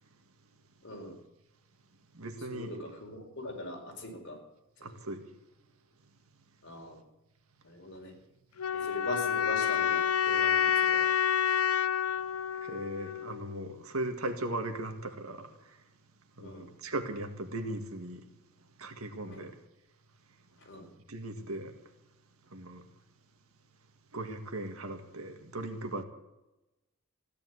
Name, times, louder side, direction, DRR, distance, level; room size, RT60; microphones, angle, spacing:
voice 1, 0.8-1.1 2.5-4.4 4.8-4.9 6.6-7.0 7.6-8.1 8.7-11.1 16.4-16.6 19.2-19.5 20.7-20.9, left 1 dB, 55° left, 4.5 m, -41 dB
voice 2, 2.1-2.7 4.8-5.2 12.6-15.5 16.4-18.2 18.8-19.5 21.1-21.7 22.5-22.8 24.1-26.0, right 1 dB, 70° right, 2.0 m, -38 dB
sound 1, 8.6-13.6, left 9 dB, 80° left, 0.7 m, -28 dB
16.0 x 10.5 x 8.1 m
head